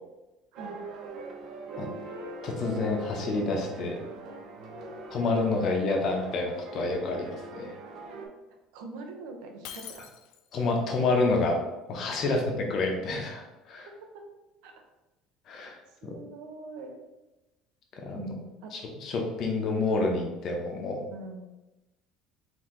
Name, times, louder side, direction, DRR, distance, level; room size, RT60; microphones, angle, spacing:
sound 1, 0.6-8.3, right 3 dB, 40° right, 0.6 m, -41 dB
voice 1, 2.4-4.0 5.1-7.7 10.5-11.6 11.9-13.9 15.5-16.1 17.9-18.2 18.7-21.0, left 3 dB, 40° left, 1 dB, 0.7 m, -28 dB
voice 2, 8.5-10.1 12.2-12.3 13.8-14.2 14.6-14.7 16.0-17.0 18.1-18.7 21.1-21.5, right 3 dB, 75° right, 3 dB, 0.7 m, -43 dB
Shatter, 9.6-10.7, left 9 dB, 65° left, 0.4 m, -44 dB
4.5 x 2.8 x 3.7 m, 1.0 s
cardioid pair, 175°, 0 cm